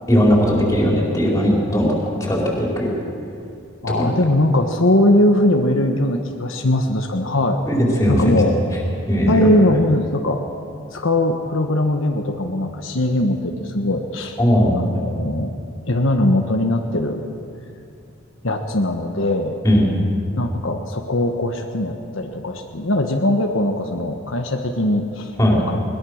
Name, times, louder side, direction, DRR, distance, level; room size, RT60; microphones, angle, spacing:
voice 1, 0.1-2.9 4.0-4.1 7.7-8.3 9.1-9.5 14.4-14.8 19.6-19.9 25.4-25.6, equal, 15° left, -3 dB, 4.5 m, -18 dB
voice 2, 3.8-7.6 8.1-8.6 9.3-10.4 10.9-14.4 14.7-15.5 15.9-17.2 18.4-19.6 20.4-25.3 25.7-25.8, left 1 dB, 65° left, 3 dB, 1.3 m, -20 dB
21.0 x 21.0 x 6.5 m, 2.5 s
head